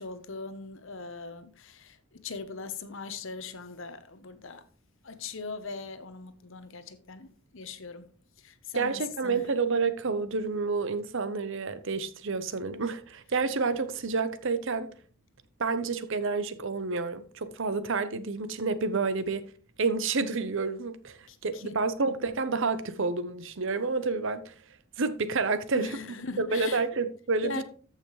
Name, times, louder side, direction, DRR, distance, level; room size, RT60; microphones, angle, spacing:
voice 1, 0.0-4.6 5.0-8.1 8.4-9.4 21.3-21.7 25.7-26.8 27.4-27.6, left 4 dB, 60° left, 1.0 m, -40 dB
voice 2, 8.7-14.9 15.6-19.5 19.8-24.5 25.0-26.0 26.4-27.6, right 4 dB, 60° right, 0.8 m, -29 dB
14.0 x 5.8 x 3.1 m
head